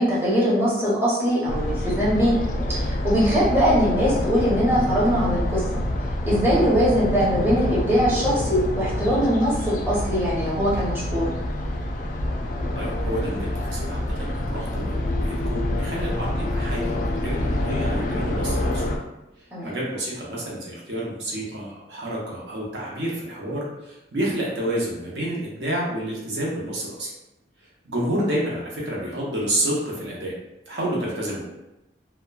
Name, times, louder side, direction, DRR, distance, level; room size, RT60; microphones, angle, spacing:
voice 1, 0.0-2.4 2.7-5.6 6.3-11.3 19.5-19.7, equal, 10° right, -9 dB, 0.7 m, -21 dB
sound 1, 1.5-19.0, left 1 dB, 45° left, 0.3 m, -26 dB
voice 2, 12.7-18.8 19.6-27.1 27.8-30.3 30.7-31.5, right 1 dB, 70° right, -5 dB, 0.7 m, -29 dB
2.8 x 2.2 x 2.3 m, 0.93 s
head